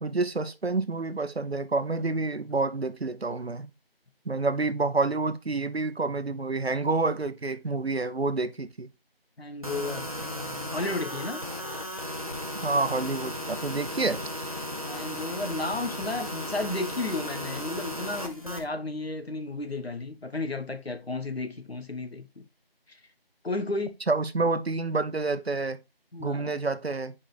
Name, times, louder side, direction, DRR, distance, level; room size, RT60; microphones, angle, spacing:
voice 1, 0.0-3.7 4.3-8.9 12.5-14.2 24.1-25.8 26.2-27.1, right 3 dB, 85° right, 0.8 m, -28 dB
voice 2, 9.4-11.5 14.8-22.4 22.9-23.0 23.4-24.0 26.1-26.5, left 2 dB, 80° left, 1.2 m, -33 dB
sound 1, 9.6-18.6, equal, 35° right, 0.7 m, -35 dB
5.0 x 4.2 x 4.9 m
figure-of-eight pair, 175°, 31 cm